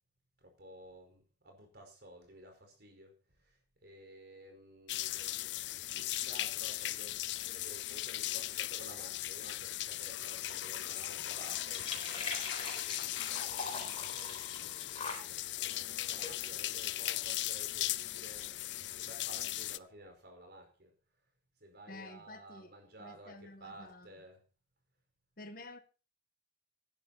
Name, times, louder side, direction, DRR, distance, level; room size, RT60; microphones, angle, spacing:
voice 1, 0.4-5.3 6.1-14.8 15.6-21.0 21.6-24.4, right 1 dB, 55° right, 4.9 m, -54 dB
tap water, 4.9-19.8, left 15 dB, 65° left, 0.5 m, -38 dB
sound 1, 10.1-17.3, left 4 dB, 30° left, 4.4 m, -45 dB
voice 2, 21.9-22.7 23.0-24.1 25.4-25.8, left 2 dB, 50° left, 1.7 m, -50 dB
13.5 x 11.0 x 4.2 m
head